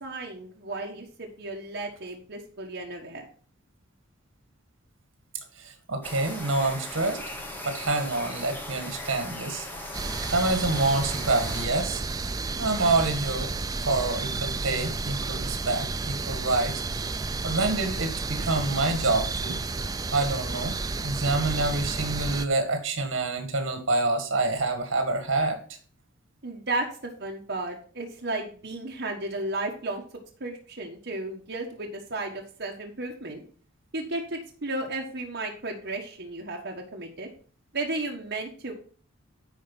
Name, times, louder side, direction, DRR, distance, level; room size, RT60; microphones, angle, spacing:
voice 1, 0.0-3.3 26.4-26.9 27.2-30.0 30.4-33.4 33.9-37.3 37.7-38.7, right 2 dB, 55° right, 0 dB, 1.4 m, -34 dB
voice 2, 5.6-7.2 7.7-9.7 10.0-12.0 12.6-13.5 13.9-16.7 17.1-17.2 17.4-19.6 20.1-25.6, right 2 dB, 80° right, 6 dB, 1.8 m, -27 dB
sound 1, 6.0-11.7, left 1 dB, 10° left, 1.3 m, -38 dB
sound 2, 9.9-22.5, right 3 dB, 20° right, 0.4 m, -31 dB
10.0 x 4.5 x 5.5 m, 0.44 s
head